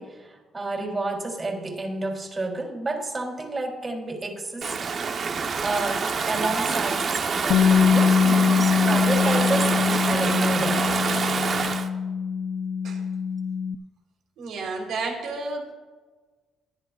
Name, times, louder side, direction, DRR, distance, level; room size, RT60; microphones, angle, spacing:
voice 1, 0.0-4.9 5.6-10.9, right 2 dB, 30° right, 1 dB, 3.4 m, -30 dB
Stream / Ocean, 4.6-11.9, right 5 dB, 50° right, 1.0 m, -26 dB
Bass guitar, 7.5-13.8, left 6 dB, 65° left, 0.4 m, -22 dB
voice 2, 14.4-15.7, right 3 dB, 80° right, 1 dB, 3.9 m, -32 dB
21.5 x 11.0 x 2.5 m, 1.3 s
cardioid pair, 90°, 0 cm